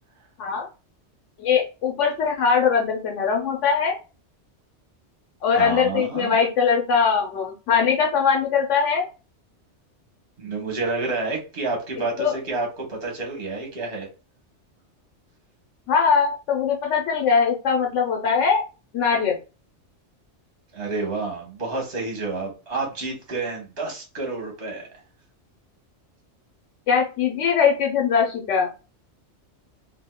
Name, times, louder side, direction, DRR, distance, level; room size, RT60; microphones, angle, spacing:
voice 1, 1.4-4.0 5.4-9.1 12.2-12.4 15.9-18.6 18.9-19.4 26.9-28.7, left 6 dB, 85° left, 1 dB, 1.1 m, -21 dB
voice 2, 5.5-6.4 10.4-14.1 20.7-24.9, right 3 dB, 55° right, 0 dB, 1.5 m, -29 dB
3.5 x 2.7 x 2.2 m, 0.31 s
omnidirectional pair, 1.2 m